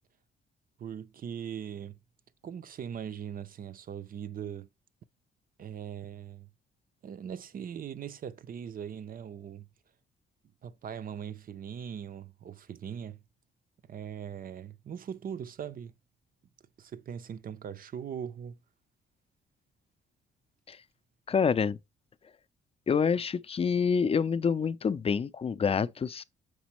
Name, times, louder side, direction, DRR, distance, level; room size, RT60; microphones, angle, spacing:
voice 1, 0.8-2.0 2.4-4.7 5.6-6.5 7.0-9.7 10.6-13.2 13.9-15.9 16.8-18.6, right 8 dB, 45° right, 0.5 m, -40 dB
voice 2, 21.3-21.8 22.9-26.2, left 6 dB, 30° left, 0.5 m, -27 dB
6.1 x 5.1 x 3.0 m
cardioid pair, 90°, 20 cm